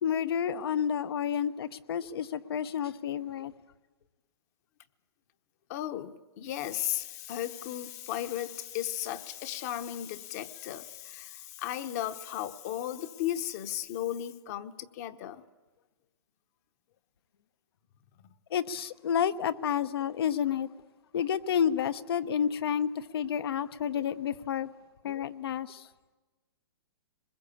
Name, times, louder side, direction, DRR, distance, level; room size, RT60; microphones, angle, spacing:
voice 1, 0.0-3.5 18.5-20.7 21.1-24.7 25.0-25.8, left 8 dB, 70° left, 1.0 m, -30 dB
voice 2, 5.7-15.4, left 12 dB, 40° left, 1.1 m, -35 dB
24.0 x 21.0 x 8.5 m
hypercardioid pair, 155°, 13 cm